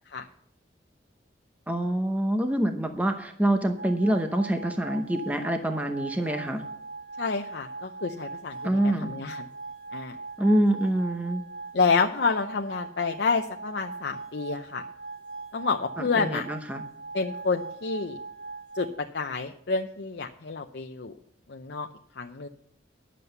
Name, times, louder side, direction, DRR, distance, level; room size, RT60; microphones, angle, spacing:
voice 1, 1.7-6.6 8.6-9.2 10.4-11.4 16.0-16.8, right 1 dB, 10° right, 5 dB, 0.8 m, -26 dB
sound 1, 3.8-18.9, right 3 dB, 80° right, 1.7 m, -40 dB
voice 2, 7.2-9.5 9.9-10.1 11.7-14.8 15.5-16.5 17.1-18.2 18.7-21.1 21.5-21.9 22.2-22.5, left 4 dB, 70° left, 4 dB, 0.7 m, -29 dB
11.0 x 7.6 x 6.7 m, 0.68 s
head